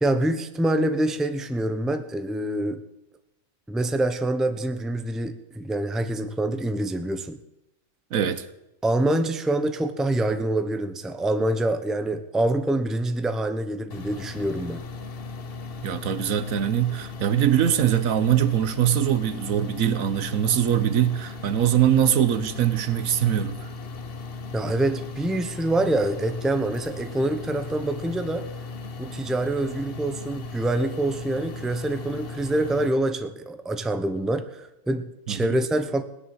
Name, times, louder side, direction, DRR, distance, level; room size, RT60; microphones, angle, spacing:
voice 1, 0.0-2.8 3.7-7.4 8.8-14.8 24.5-28.5 29.0-36.0, right 1 dB, ahead, 0.7 m, -26 dB
voice 2, 8.1-8.5 15.8-23.7 35.3-35.6, right 10 dB, 80° right, 1.3 m, -22 dB
sound 1, 13.9-32.9, left 4 dB, 45° left, 1.2 m, -37 dB
17.0 x 10.5 x 7.8 m
omnidirectional pair, 1.4 m